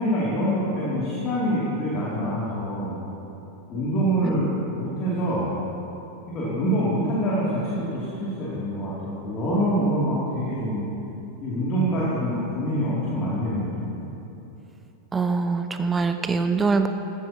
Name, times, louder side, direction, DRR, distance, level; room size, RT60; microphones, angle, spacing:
voice 1, 0.0-3.0 3.7-4.5 4.7-5.6 6.3-10.8 11.4-14.0, equal, 30° left, -9 dB, 2.8 m, -25 dB
voice 2, 15.1-16.9, right 4 dB, 15° right, 8 dB, 0.5 m, -23 dB
15.5 x 12.0 x 3.0 m, 3.0 s
figure-of-eight pair, 90°, 0 cm